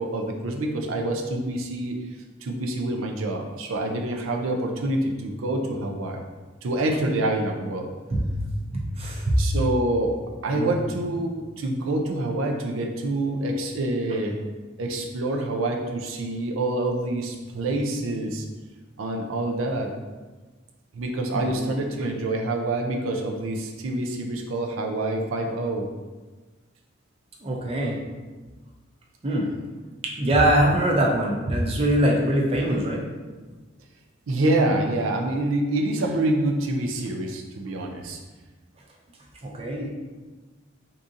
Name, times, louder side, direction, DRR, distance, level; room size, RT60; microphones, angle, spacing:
voice 1, 0.0-2.0 2.4-6.2 6.6-7.9 9.4-14.4 14.8-18.5 19.0-19.9 20.9-25.9 34.3-38.2, right 1 dB, 90° right, 2 dB, 0.4 m, -26 dB
voice 2, 8.1-9.4 10.5-10.8 21.3-21.7 22.1-22.2 27.4-28.0 29.2-29.5 30.2-33.0 39.4-39.9, right 1 dB, 30° right, -1 dB, 0.5 m, -23 dB
3.6 x 2.7 x 2.5 m, 1.3 s
head